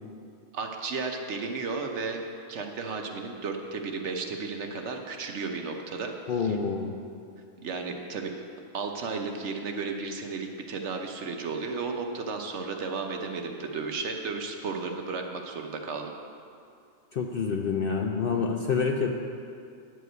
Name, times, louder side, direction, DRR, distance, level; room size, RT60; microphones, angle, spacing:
voice 1, 0.5-2.2 2.5-6.1 6.4-6.6 7.6-8.4 8.7-16.1, right 4 dB, 60° right, 3 dB, 1.0 m, -34 dB
voice 2, 6.3-6.9 17.1-19.1, left 5 dB, 60° left, 3 dB, 0.6 m, -27 dB
10.0 x 4.8 x 7.9 m, 2.4 s
omnidirectional pair, 1.4 m